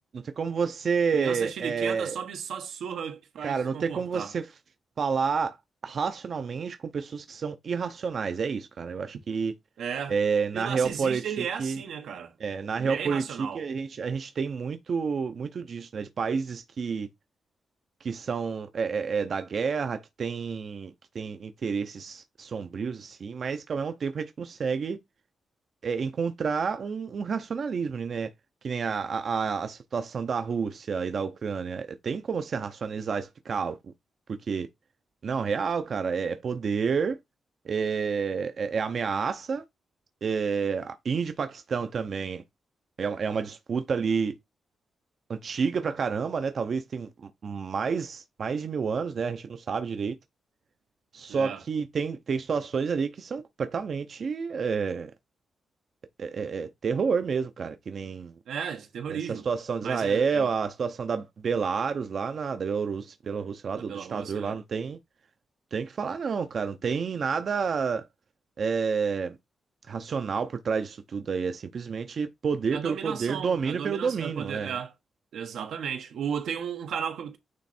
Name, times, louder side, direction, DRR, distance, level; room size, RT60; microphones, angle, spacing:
voice 1, 0.4-2.2 3.4-4.5 5.0-5.6 5.8-9.5 10.1-11.8 12.4-17.1 18.0-25.0 25.8-28.3 28.6-33.9 34.5-34.7 35.2-37.2 37.6-39.6 40.2-42.4 43.0-44.3 45.3-50.2 51.1-55.1 56.2-58.3 59.1-65.0 65.7-68.1 68.6-69.4 69.9-74.8, right 5 dB, 45° right, 0.7 m, -29 dB
voice 2, 1.1-4.3 9.8-10.2 10.5-12.3 12.8-13.7 51.3-51.6 58.5-59.5 59.8-60.5 63.8-64.6 72.7-74.9 75.3-77.4, right 7 dB, 85° right, 1.3 m, -35 dB
9.4 x 3.2 x 4.3 m
wide cardioid pair, 165°, 0 cm